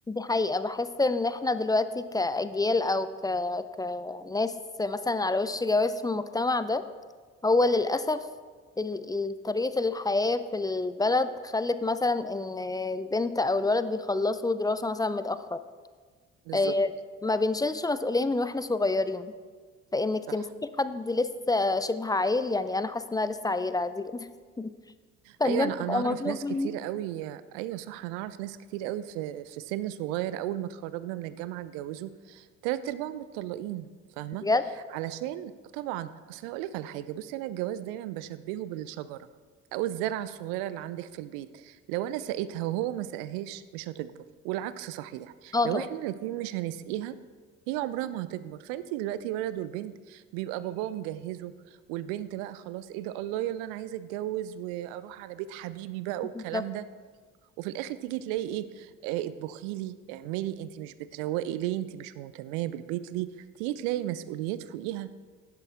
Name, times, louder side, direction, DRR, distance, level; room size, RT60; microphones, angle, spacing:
voice 1, 0.1-4.5 4.8-6.8 7.4-8.3 8.8-15.6 16.5-16.9 17.2-19.3 19.9-20.5 20.8-24.3 24.6-24.7 25.4-26.7 34.4-34.7 45.5-45.9 56.4-56.6, left 2 dB, 10° left, 12 dB, 0.4 m, -27 dB
voice 2, 25.2-33.9 34.2-34.4 34.9-39.3 39.7-44.1 44.4-47.2 47.7-51.5 51.9-56.8 57.6-63.3 63.6-65.1, right 13 dB, 65° right, 15 dB, 0.6 m, -34 dB
11.5 x 10.5 x 3.5 m, 1.5 s
figure-of-eight pair, 50°, 36 cm